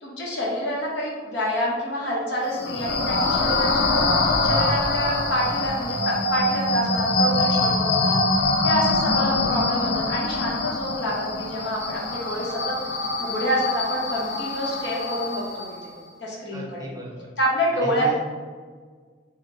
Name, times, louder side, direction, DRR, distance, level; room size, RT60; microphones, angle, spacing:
voice 1, 0.0-8.2 8.6-12.7 13.2-15.6 16.2-16.9 17.4-18.2, equal, 80° left, -3 dB, 0.8 m, -27 dB
sound 1, 2.4-15.8, left 2 dB, 60° left, 0.4 m, -24 dB
voice 2, 9.2-9.5 16.5-17.3 17.7-18.2, equal, 20° right, -3 dB, 0.5 m, -35 dB
2.8 x 2.0 x 3.6 m, 1.6 s
head